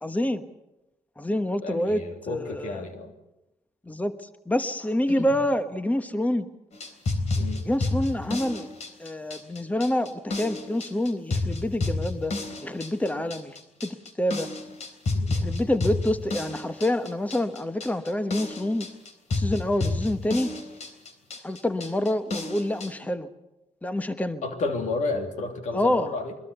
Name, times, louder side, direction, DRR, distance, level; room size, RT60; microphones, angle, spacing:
voice 1, 0.0-0.4 1.2-2.8 3.9-6.5 7.6-8.7 9.0-12.4 12.6-13.6 13.8-14.5 15.3-18.9 19.3-20.5 21.4-23.3 23.8-24.4 25.7-26.1, left 1 dB, 10° left, 9 dB, 1.3 m, -27 dB
voice 2, 1.6-3.1 5.1-5.3 7.3-7.6 13.1-13.2 15.1-15.3 24.4-26.4, left 3 dB, 80° left, 5 dB, 3.0 m, -31 dB
sound 1, 6.7-22.9, left 2 dB, 65° left, 3.6 m, -30 dB
24.0 x 22.0 x 6.9 m, 0.96 s
cardioid pair, 70°, 12 cm